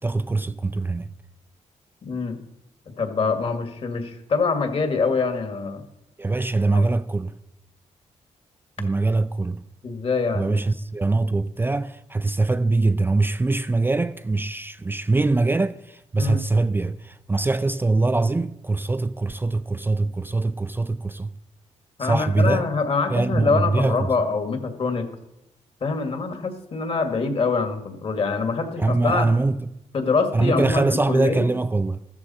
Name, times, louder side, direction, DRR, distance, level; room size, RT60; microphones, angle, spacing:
voice 1, 0.0-1.1 6.2-7.3 8.8-9.6 10.3-21.3 22.0-22.7 23.1-24.0 28.8-29.6 30.3-32.0, right 3 dB, 15° right, 0.4 m, -23 dB
voice 2, 2.0-2.4 3.0-5.8 6.7-6.9 9.8-10.6 16.2-16.4 22.0-25.1 25.8-29.3 29.9-31.5, left 4 dB, 50° left, 2.1 m, -24 dB
14.5 x 13.5 x 4.3 m
cardioid pair, 115°, 12 cm